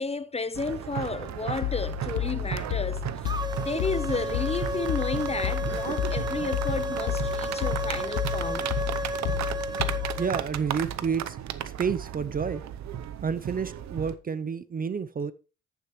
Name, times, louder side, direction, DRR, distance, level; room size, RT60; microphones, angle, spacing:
voice 1, 0.0-3.1 3.6-8.7, left 4 dB, 20° left, 0.6 m, -32 dB
sound 1, 0.5-14.2, right 10 dB, 65° right, 0.8 m, -35 dB
sound 2, 1.6-10.3, left 18 dB, 80° left, 0.7 m, -32 dB
sound 3, 3.3-10.5, right 1 dB, 15° right, 1.0 m, -33 dB
voice 2, 10.2-11.4 11.6-12.6 13.2-15.3, right 6 dB, 30° right, 0.5 m, -30 dB
11.0 x 8.9 x 3.1 m
cardioid pair, 90°, 30 cm